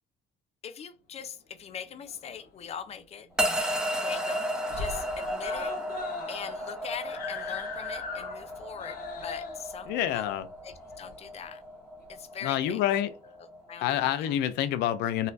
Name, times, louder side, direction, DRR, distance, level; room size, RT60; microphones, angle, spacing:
voice 1, 0.6-3.3 3.9-4.5 4.8-5.7 6.3-10.4 10.6-11.6 12.1-12.8 13.7-14.4, left 7 dB, 40° left, 0.5 m, -41 dB
Screaming, 1.8-2.7 3.0-3.1 3.4-3.5 3.8-4.3 4.6-11.5 12.3-12.4, left 4 dB, 60° left, 0.9 m, -40 dB
sound 1, 3.4-13.7, equal, 5° right, 0.9 m, -34 dB
voice 2, 9.9-10.5 12.4-13.1 13.8-15.3, left 11 dB, 90° left, 0.5 m, -27 dB
4.0 x 2.5 x 2.6 m
cardioid pair, 110°, 17 cm